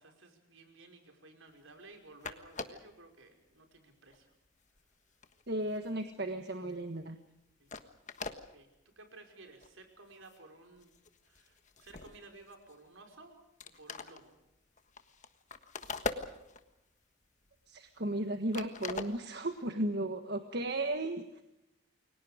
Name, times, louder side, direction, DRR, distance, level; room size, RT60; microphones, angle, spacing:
voice 1, 0.0-4.3 7.6-7.8 8.2-8.7 9.0-10.9 11.2-13.4 13.6-14.4, right 2 dB, 70° right, 4 dB, 5.2 m, -56 dB
sound 1, 1.9-2.0 2.2-2.9 3.6-3.8 4.1-6.5 6.8-7.0 7.4-7.5 7.7-8.4 9.0-9.1 9.5-9.7 10.1-10.5 10.7-13.0 13.3-13.4 13.6-16.8 17.2-18.2 18.5-19.6, left 3 dB, 35° left, 1.4 m, -43 dB
voice 2, 5.5-7.2 17.7-21.4, right 1 dB, 50° right, 7 dB, 1.5 m, -35 dB
29.5 x 23.0 x 5.1 m, 0.87 s
head